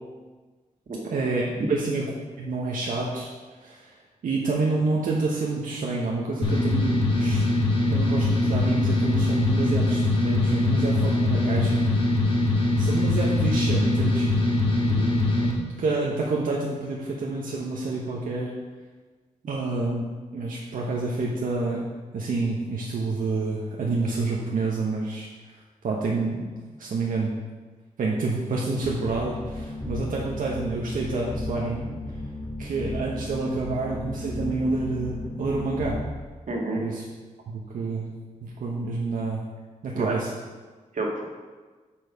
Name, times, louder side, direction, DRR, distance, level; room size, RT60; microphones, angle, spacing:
voice 1, 1.1-2.1 2.4-3.3 3.6-4.0 4.2-7.5 7.9-11.8 12.8-14.3 15.7-18.5 19.5-20.0 20.3-21.9 22.1-25.3 25.8-26.4 26.8-27.3 28.0-31.9 32.6-36.0 36.7-37.0 37.5-38.1 38.4-39.4 39.8-40.3, right 3 dB, 90° right, -3 dB, 1.0 m, -28 dB
sound 1, 6.4-15.5, left 2 dB, 40° left, 1.5 m, -22 dB
sound 2, 28.8-36.0, left 1 dB, 20° left, 1.1 m, -34 dB
voice 2, 36.5-36.8 39.9-40.2 40.9-41.3, right 2 dB, 65° right, -1 dB, 1.6 m, -29 dB
8.6 x 4.7 x 5.3 m, 1.4 s
wide cardioid pair, 105°, 14 cm